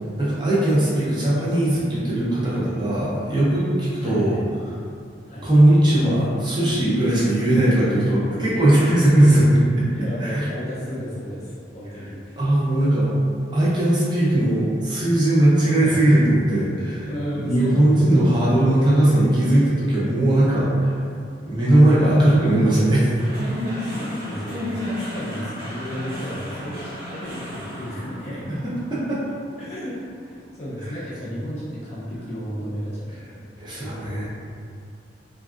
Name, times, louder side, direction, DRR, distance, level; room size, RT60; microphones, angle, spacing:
voice 1, 0.2-4.3 5.4-9.8 10.2-10.4 12.4-13.1 13.5-17.1 17.4-21.0 21.4-23.1 28.6-29.2 33.6-34.3, right 1 dB, 25° right, -8 dB, 0.6 m, -19 dB
voice 2, 4.0-4.4 5.3-5.5 7.0-7.4 7.7-8.0 8.3-8.6 9.9-12.4 15.8-16.0 17.0-18.7 23.7-28.6 29.6-33.4 33.8-34.3, equal, 35° left, -8 dB, 0.5 m, -33 dB
sound 1, 23.2-31.6, left 1 dB, 50° right, 1.0 m, -33 dB
3.2 x 2.5 x 2.4 m, 2.3 s
head